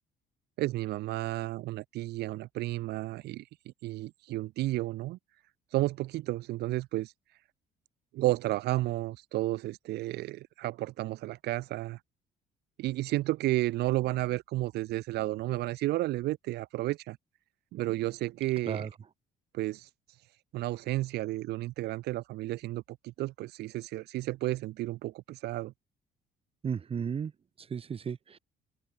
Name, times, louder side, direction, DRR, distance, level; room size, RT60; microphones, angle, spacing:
voice 1, 0.6-3.4 3.8-5.2 5.7-7.1 8.1-12.0 12.8-17.2 17.7-18.9 19.5-19.9 20.5-25.7, right 17 dB, 75° right, 1.1 m, -32 dB
voice 2, 26.6-27.3 27.6-28.4, right 7 dB, 35° right, 1.3 m, -34 dB
open air
cardioid pair, 110°, 17 cm